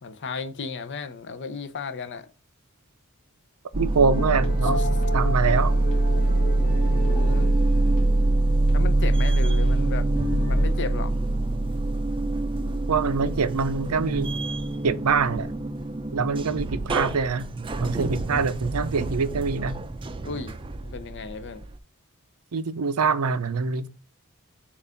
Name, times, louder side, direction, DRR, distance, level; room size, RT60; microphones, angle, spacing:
voice 1, 0.0-2.3 4.8-4.9 6.8-7.6 8.7-10.1 10.4-11.2 20.2-20.6 20.8-21.6, left 5 dB, 55° left, 0.7 m, -34 dB
sound 1, 3.7-21.8, right 2 dB, 25° right, 0.5 m, -24 dB
voice 2, 3.8-4.9 5.1-5.8 12.9-14.3 14.8-15.5 16.1-17.4 17.8-19.8 22.5-23.9, right 5 dB, 85° right, 0.6 m, -24 dB
sound 2, 4.1-9.3 9.7-10.7, equal, 25° left, 2.5 m, -31 dB
7.0 x 2.5 x 5.6 m
head